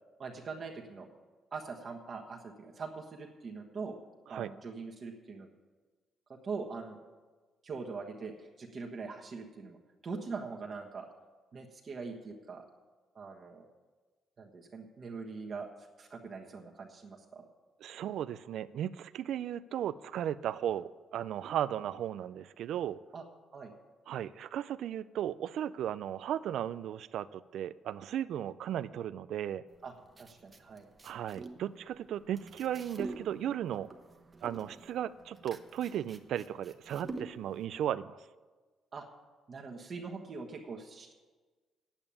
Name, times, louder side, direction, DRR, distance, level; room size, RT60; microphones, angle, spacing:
voice 1, 0.2-1.1 1.5-4.0 4.3-5.5 6.3-7.0 7.6-9.8 10.0-11.1 11.5-12.6 13.1-13.7 14.4-17.4 23.1-23.2 23.5-23.7 29.8-29.9 30.2-30.9 38.9-39.0 39.5-41.1, right 4 dB, 45° right, 0 dB, 1.3 m, -42 dB
voice 2, 17.8-23.0 24.1-29.6 31.0-33.9 34.4-38.2, right 10 dB, 75° right, 15 dB, 0.3 m, -36 dB
sound 1, 29.7-37.7, right 3 dB, 30° right, 1.1 m, -47 dB
8.9 x 8.7 x 8.8 m, 1.3 s
cardioid pair, 90°, 0 cm